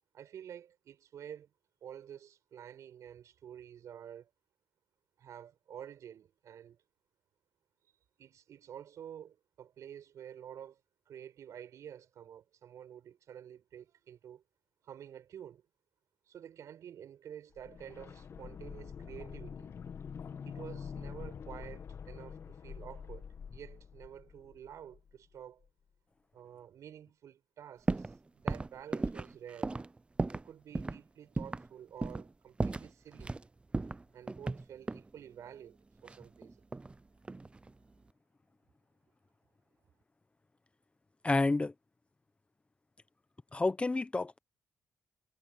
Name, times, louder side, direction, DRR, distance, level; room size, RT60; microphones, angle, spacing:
voice 1, 0.1-1.5 1.8-4.3 5.2-6.8 8.2-10.8 11.1-14.4 14.8-15.6 16.3-19.7 20.5-25.7 26.3-29.8 30.3-33.4 34.1-36.6, right 9 dB, 65° right, 4.6 m, -50 dB
sound 1, 17.5-25.3 25.6-25.7, left 6 dB, 50° left, 1.8 m, -46 dB
sound 2, 27.9-28.2 28.5-30.5 30.8-31.0 31.4-31.7 32.0-32.3 32.6-33.4 33.7-35.1 36.1-37.0 37.3-37.7, right 3 dB, 20° right, 0.6 m, -35 dB
voice 2, 41.2-41.7 43.5-44.4, left 3 dB, 20° left, 0.9 m, -29 dB
cardioid pair, 80°, 6 cm